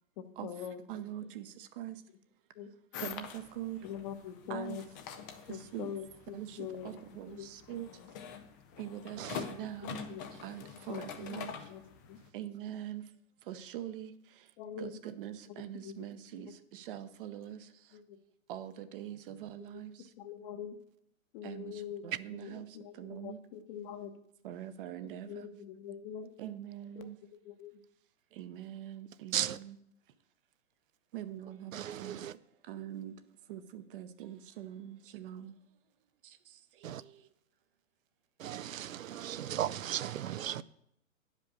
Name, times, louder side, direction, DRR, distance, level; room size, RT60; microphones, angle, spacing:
voice 1, 0.2-0.8 1.2-1.3 2.5-2.7 3.8-4.8 5.5-6.9 7.3-7.5 10.1-10.2 10.9-11.0 11.3-11.8 12.1-12.2 14.6-15.0 15.8-16.0 16.4-16.5 17.9-18.2 19.7-19.8 20.2-20.8 21.3-22.0 22.4-24.1 25.2-26.3 27.0-27.1 27.4-27.7, left 9 dB, 35° left, 1.0 m, -43 dB
voice 2, 0.9-1.5 1.8-1.9 3.0-3.8 4.5-4.8 5.7-5.9 6.3-6.6 6.8-7.9 8.8-9.2 9.5-10.0 10.4-11.5 12.3-13.0 13.5-14.1 14.8-17.6 18.5-19.9 21.4-21.7 22.0-22.7 23.0-23.4 24.4-25.5 26.4-27.2 28.4-29.8 31.1-32.2 32.7-33.1 33.5-35.5, right 12 dB, 40° right, 0.8 m, -43 dB
sound 1, 2.9-12.3, left 7 dB, 15° left, 0.4 m, -46 dB
voice 3, 31.7-32.3 36.8-37.0 38.4-40.6, right 11 dB, 70° right, 0.6 m, -36 dB
10.0 x 5.3 x 6.7 m
hypercardioid pair, 125°, 42 cm